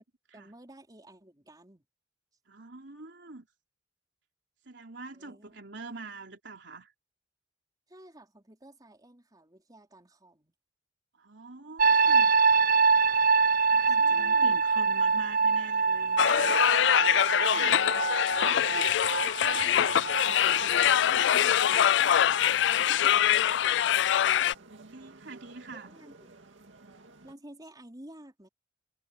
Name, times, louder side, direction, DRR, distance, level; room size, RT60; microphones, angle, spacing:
voice 1, 0.3-1.8 5.1-5.6 7.9-10.5 13.9-14.6 17.5-18.1 19.4-20.6 22.7-23.4 25.7-26.3 27.2-28.5, right 1 dB, 20° right, 4.4 m, -52 dB
voice 2, 2.5-3.5 4.7-6.9 11.1-12.3 13.7-16.2 21.1-21.5 24.5-25.9, right 3 dB, 65° right, 3.7 m, -45 dB
sound 1, 11.8-23.5 23.8-24.2, right 5 dB, 45° right, 0.5 m, -26 dB
sound 2, 16.2-24.5, left 10 dB, 65° left, 0.3 m, -24 dB
sound 3, 19.8-27.3, right 3 dB, 85° right, 2.2 m, -53 dB
head